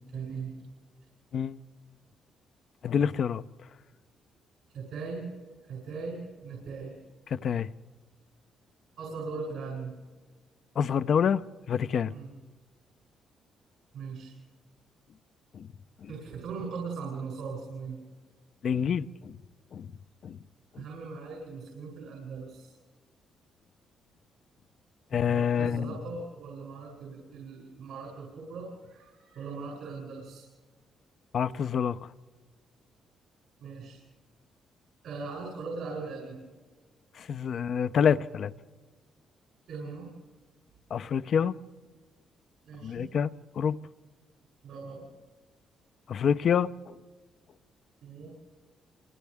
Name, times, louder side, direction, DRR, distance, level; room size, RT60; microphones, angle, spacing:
voice 1, 0.1-0.6 4.7-5.3 5.6-7.0 9.0-9.9 12.1-12.3 13.9-14.3 16.1-18.0 20.7-22.7 25.2-30.4 33.6-34.0 35.0-36.4 39.7-40.1 42.6-43.1 44.6-45.1 48.0-48.3, right 4 dB, 80° right, 7.7 m, -39 dB
voice 2, 2.8-3.4 7.3-7.7 10.8-11.4 11.7-12.1 15.5-15.7 16.0-16.1 18.6-19.4 19.7-19.9 20.2-20.4 20.7-20.8 25.1-25.9 31.3-32.1 37.1-38.5 40.9-41.6 42.8-43.3 43.5-43.8 46.1-47.0, left 7 dB, 60° left, 0.6 m, -27 dB
29.5 x 26.5 x 3.6 m
cardioid pair, 75°, 0 cm